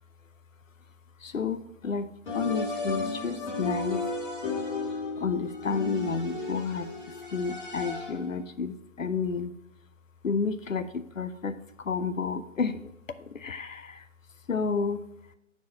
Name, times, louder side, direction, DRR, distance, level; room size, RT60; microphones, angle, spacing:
voice 1, 1.2-4.0 5.2-6.9 7.3-9.5 10.2-12.9 13.2-14.1 14.5-15.0, left 5 dB, 80° left, 12 dB, 0.8 m, -31 dB
sound 1, 2.3-8.3, left 3 dB, 40° left, 2.1 m, -33 dB
12.0 x 4.6 x 2.8 m, 0.88 s
figure-of-eight pair, 155°, 38 cm